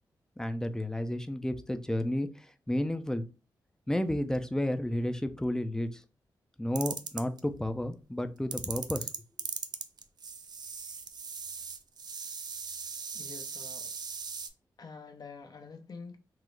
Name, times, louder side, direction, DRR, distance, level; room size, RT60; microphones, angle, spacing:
voice 1, 0.4-3.2 3.9-6.0 6.6-9.1, left 1 dB, 5° left, 0.5 m, -32 dB
sound 1, 6.8-7.4 8.5-14.5, right 5 dB, 60° right, 0.4 m, -39 dB
voice 2, 13.1-14.0 14.8-16.2, left 4 dB, 55° left, 0.7 m, -47 dB
3.6 x 2.0 x 3.1 m
cardioid pair, 50°, 8 cm